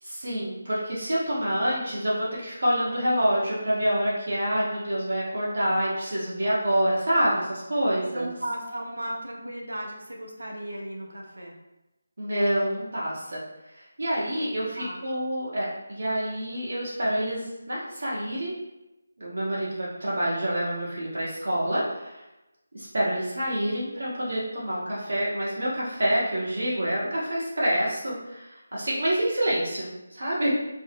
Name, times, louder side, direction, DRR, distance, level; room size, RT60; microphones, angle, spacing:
voice 1, 0.0-8.3 12.2-13.4 13.7-18.5 19.2-22.2 22.7-30.5, equal, 65° right, -8 dB, 0.9 m, -27 dB
voice 2, 8.1-11.6 14.8-15.0, right 1 dB, 85° right, 0 dB, 0.6 m, -35 dB
2.6 x 2.0 x 2.6 m, 0.98 s
figure-of-eight pair, 160°, 0 cm